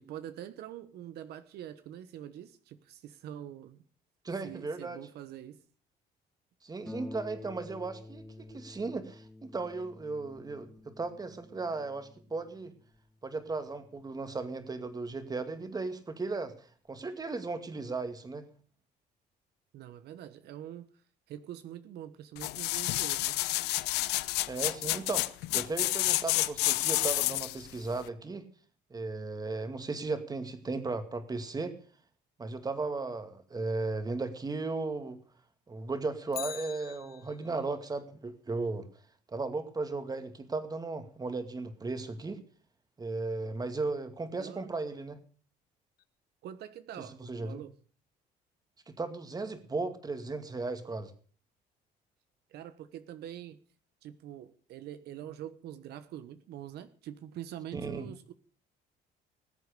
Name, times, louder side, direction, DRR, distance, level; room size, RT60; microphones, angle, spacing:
voice 1, 0.0-3.8 4.4-5.6 19.7-21.0 21.3-23.4 44.4-44.7 46.4-47.7 52.5-53.6 54.0-58.3, right 11 dB, 75° right, 11 dB, 1.2 m, -45 dB
voice 2, 4.2-5.0 6.6-12.7 13.2-18.4 24.5-25.3 25.5-28.4 28.9-31.8 32.4-35.2 35.7-38.9 39.3-42.4 43.0-45.2 47.0-47.6 48.9-51.1 57.7-58.1, right 3 dB, 20° right, 9 dB, 2.2 m, -36 dB
Harp, 6.9-16.0 16.9-17.0 17.4-17.5, left 2 dB, ahead, 1.5 m, -51 dB
sound 1, 22.4-27.6 28.1-28.2, left 18 dB, 90° left, 0.8 m, -29 dB
Bicycle, 36.3-37.7 46.0-46.1, left 12 dB, 60° left, 1.3 m, -43 dB
19.5 x 8.2 x 6.7 m, 0.43 s
cardioid pair, 110°, 17 cm